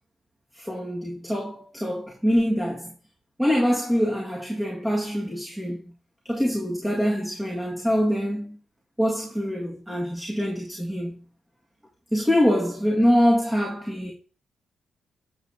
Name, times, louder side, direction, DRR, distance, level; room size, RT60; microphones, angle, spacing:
voice 1, 0.5-2.9 3.4-5.8 6.3-8.6 9.0-11.2 12.1-14.1, equal, 10° right, 1.8 m, -24 dB
8.9 x 7.1 x 2.8 m
cardioid pair, 95°, 0 cm